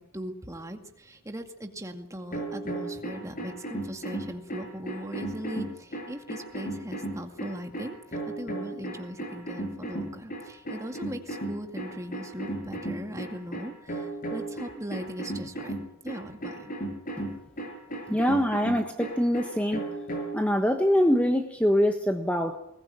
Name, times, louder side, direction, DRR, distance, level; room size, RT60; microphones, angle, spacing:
voice 1, 0.0-15.7 16.0-16.8, equal, 15° right, 5 dB, 2.1 m, -39 dB
sound 1, 2.3-20.5, right 1 dB, 40° left, 7.1 m, -35 dB
voice 2, 18.1-19.8 20.3-22.6, equal, 5° left, 5 dB, 1.3 m, -24 dB
21.5 x 20.0 x 9.0 m, 0.79 s
head